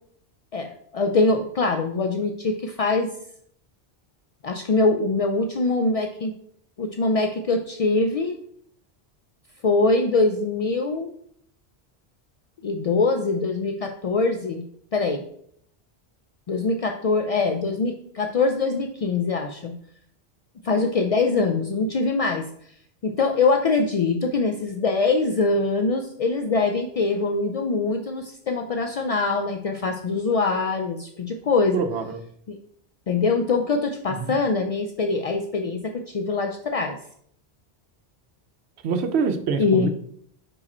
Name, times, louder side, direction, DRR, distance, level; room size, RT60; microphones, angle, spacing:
voice 1, 0.5-3.1 4.4-6.3 6.8-8.4 9.6-11.1 12.6-14.6 14.9-15.2 16.5-19.7 20.6-22.4 23.0-31.8 32.5-32.6 33.1-37.0 39.6-39.9, left 3 dB, 65° left, 4 dB, 0.3 m, -23 dB
voice 2, 31.7-32.2 34.1-34.4 38.8-39.9, right 5 dB, 75° right, 8 dB, 0.9 m, -25 dB
4.8 x 4.8 x 4.2 m, 0.67 s
omnidirectional pair, 1.1 m